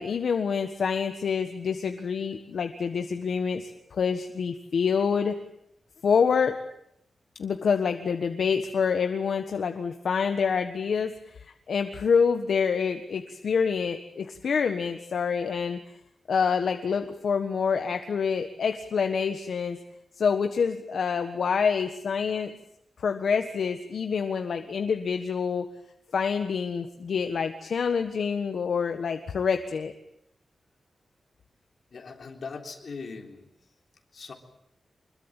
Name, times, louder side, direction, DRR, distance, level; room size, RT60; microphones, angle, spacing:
voice 1, 0.0-5.3 6.0-6.6 7.4-15.8 16.3-19.8 20.2-22.5 23.0-25.7 26.1-29.9, left 6 dB, 70° left, 7 dB, 1.4 m, -27 dB
voice 2, 31.9-33.5 34.1-34.3, left 4 dB, 55° left, 3 dB, 3.6 m, -40 dB
25.5 x 22.0 x 8.9 m, 0.76 s
wide cardioid pair, 175°, 0 cm